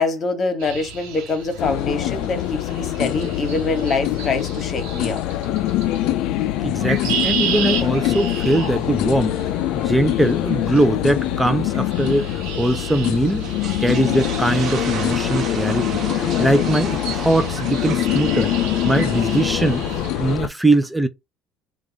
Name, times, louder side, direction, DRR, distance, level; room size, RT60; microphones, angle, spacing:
voice 1, 0.0-5.2, left 3 dB, 35° left, 1.3 m, -24 dB
sound 1, 0.6-20.1, right 7 dB, 85° right, 1.0 m, -33 dB
sound 2, 1.6-20.5, left 13 dB, 70° left, 0.4 m, -24 dB
voice 2, 6.6-9.4 9.8-12.2 12.6-13.5 13.8-16.0 16.4-18.5 18.8-19.8 20.2-21.1, right 1 dB, 5° right, 0.5 m, -21 dB
sound 3, 13.3-20.4, right 6 dB, 50° right, 0.9 m, -34 dB
3.5 x 2.4 x 4.0 m
cardioid pair, 115°, 0 cm